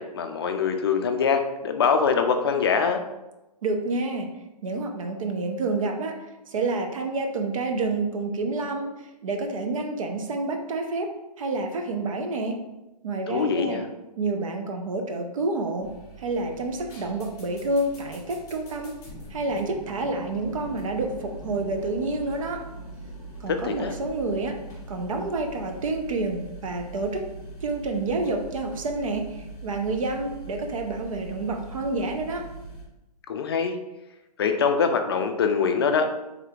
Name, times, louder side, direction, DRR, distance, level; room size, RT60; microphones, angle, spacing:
voice 1, 0.0-3.0 13.3-13.8 23.5-23.9 33.3-33.8 34.4-36.1, left 6 dB, 40° left, 6 dB, 0.4 m, -23 dB
voice 2, 3.6-4.3 4.6-11.1 11.4-12.6 13.0-13.8 14.2-19.0 19.3-22.6 23.4-24.6 24.9-27.3 27.6-32.4, right 2 dB, 55° right, 4 dB, 0.6 m, -29 dB
sound 1, 15.8-32.8, right 2 dB, 15° left, 1.2 m, -42 dB
4.8 x 3.3 x 2.4 m, 0.98 s
hypercardioid pair, 160°, 21 cm